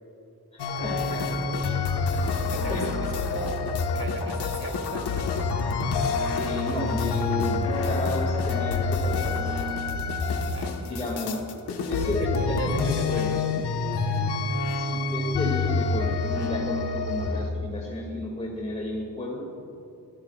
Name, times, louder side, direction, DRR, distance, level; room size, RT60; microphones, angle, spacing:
voice 1, 0.5-1.3 1.6-1.8 2.7-2.9 3.3-3.4 6.3-9.5 10.8-11.4 11.7-12.7 13.1-13.4 14.7-19.4, left 1 dB, 15° left, -3 dB, 2.3 m, -32 dB
sound 1, 0.6-17.5, left 4 dB, 85° left, 1.4 m, -27 dB
voice 2, 1.1-5.3 10.5-11.1 12.0-13.3 13.9-14.3, right 2 dB, 35° right, 1 dB, 2.9 m, -39 dB
23.0 x 15.0 x 2.4 m, 2.9 s
wide cardioid pair, 125°, 39 cm